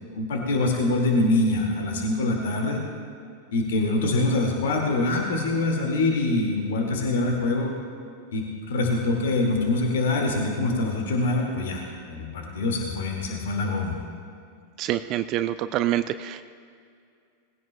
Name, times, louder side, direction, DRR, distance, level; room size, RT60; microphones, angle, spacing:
voice 1, 0.0-2.8 3.5-7.7 8.3-14.0, left 2 dB, 60° left, 1 dB, 2.2 m, -24 dB
voice 2, 14.8-16.4, right 13 dB, 40° right, 12 dB, 0.3 m, -26 dB
20.0 x 16.0 x 2.3 m, 2.3 s
figure-of-eight pair, 90°, 0 cm